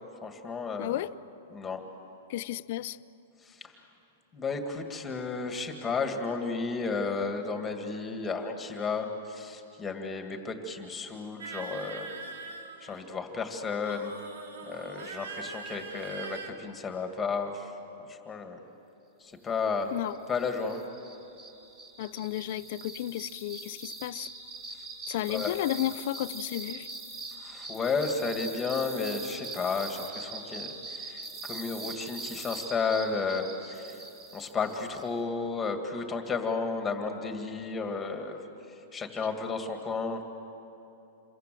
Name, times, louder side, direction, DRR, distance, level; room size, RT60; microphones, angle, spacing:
voice 1, 0.2-1.0 1.5-1.8 3.4-3.7 4.3-12.1 12.8-14.1 14.7-17.7 18.0-18.6 19.2-19.9 20.3-20.8 25.2-25.6 27.4-34.0 34.3-38.4 38.7-40.2, left 4 dB, 10° left, 5 dB, 2.0 m, -33 dB
voice 2, 0.8-1.1 2.3-3.0 19.9-20.1 22.0-24.3 25.1-26.9, left 14 dB, 50° left, 16 dB, 0.6 m, -33 dB
sound 1, 11.4-13.2 13.8-16.5, right 4 dB, 90° right, 2.9 m, -42 dB
sound 2, 20.1-35.1, right 3 dB, 25° right, 3.3 m, -42 dB
27.5 x 22.5 x 7.8 m, 2.9 s
supercardioid pair, 160°, 0 cm